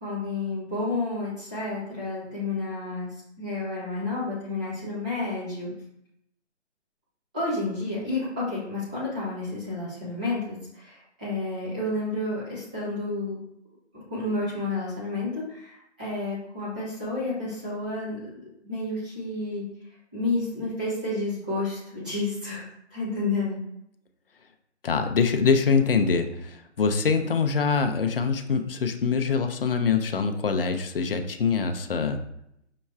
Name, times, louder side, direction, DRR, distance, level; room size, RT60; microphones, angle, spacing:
voice 1, 0.0-5.7 7.3-13.4 14.1-18.3 18.6-19.6 20.1-23.6, left 2 dB, 5° right, -11 dB, 0.6 m, -30 dB
voice 2, 24.8-32.2, left 5 dB, 50° left, 7 dB, 0.5 m, -24 dB
5.5 x 3.0 x 2.3 m, 0.75 s
hypercardioid pair, 160°, 35 cm